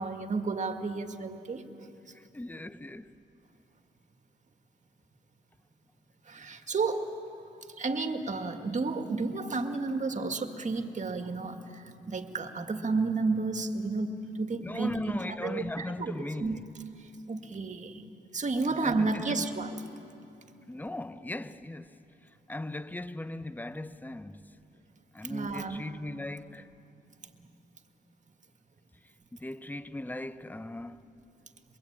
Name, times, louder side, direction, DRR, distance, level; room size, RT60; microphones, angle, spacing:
voice 1, 0.0-1.9 6.3-7.1 7.8-16.1 16.4-16.6 17.3-18.1 18.3-19.8 25.3-25.8 27.4-27.5, right 3 dB, 40° right, 2.0 m, -32 dB
voice 2, 2.1-3.1 14.6-16.6 18.6-19.4 20.7-21.9 22.5-24.5 25.1-26.7 29.3-31.0, left 1 dB, 10° left, 0.8 m, -38 dB
23.0 x 22.5 x 8.8 m
cardioid pair, 75°, 19 cm